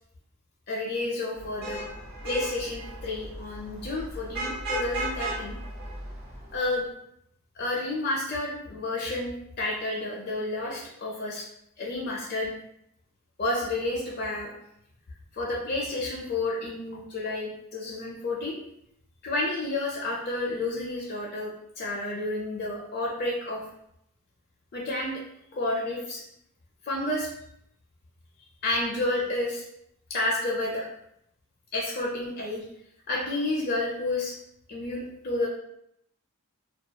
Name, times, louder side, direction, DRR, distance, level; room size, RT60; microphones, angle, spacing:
voice 1, 0.7-1.8 2.2-5.6 6.5-6.9 7.6-11.4 11.8-12.5 13.4-14.5 15.3-18.5 19.2-21.5 21.8-23.6 24.7-25.1 25.5-26.2 26.9-27.3 28.6-29.6 30.1-30.9 31.7-32.6 33.1-34.3 34.7-35.5, left 2 dB, 45° left, -3 dB, 0.4 m, -30 dB
Vehicle horn car horn honking / Traffic noise roadway noise, 1.4-6.7, right 1 dB, 45° right, 0.6 m, -36 dB
2.3 x 2.2 x 2.7 m, 0.75 s
head